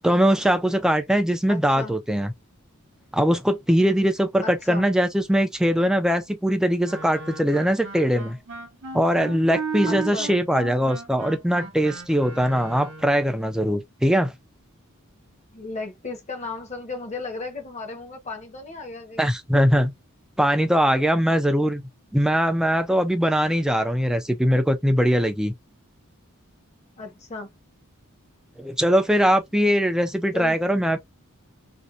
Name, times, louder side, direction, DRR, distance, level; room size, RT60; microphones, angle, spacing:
voice 1, 0.0-2.3 3.1-8.4 8.9-14.3 19.2-19.9 20.4-21.8 22.1-25.5 28.6-31.0, equal, 5° right, 0.3 m, -21 dB
voice 2, 1.5-2.0 4.4-4.9 9.9-10.3 15.5-19.3 27.0-27.5 30.3-30.6, left 3 dB, 35° left, 0.8 m, -35 dB
Wind instrument woodwind instrument, 6.8-13.2, right 4 dB, 60° right, 0.7 m, -35 dB
2.6 x 2.2 x 2.3 m
head